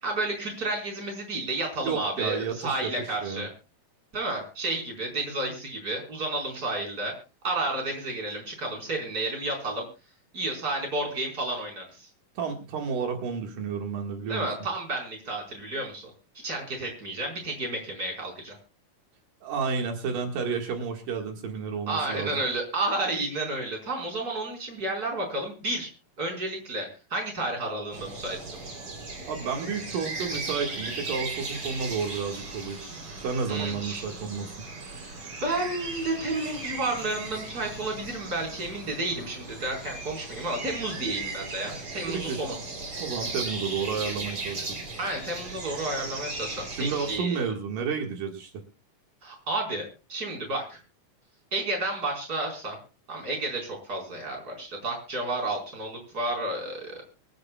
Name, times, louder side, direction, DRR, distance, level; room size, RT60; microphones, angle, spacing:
voice 1, 0.0-3.5 4.1-7.1 7.4-9.9 10.3-12.1 14.3-16.1 16.4-18.6 21.9-25.9 26.2-28.6 33.5-34.0 35.4-42.6 45.0-47.4 49.2-50.8 51.5-52.8 53.1-57.0, right 2 dB, 25° right, 1 dB, 5.2 m, -31 dB
voice 2, 1.8-2.6 2.8-2.9 3.2-3.5 12.4-14.5 19.4-22.3 29.3-32.8 33.2-34.6 42.1-42.4 43.0-44.8 46.6-48.5, right 5 dB, 80° right, 2 dB, 3.6 m, -31 dB
sound 1, 27.9-47.1, right 3 dB, 40° right, 4.5 m, -37 dB
24.5 x 13.5 x 2.4 m, 0.31 s
omnidirectional pair, 3.8 m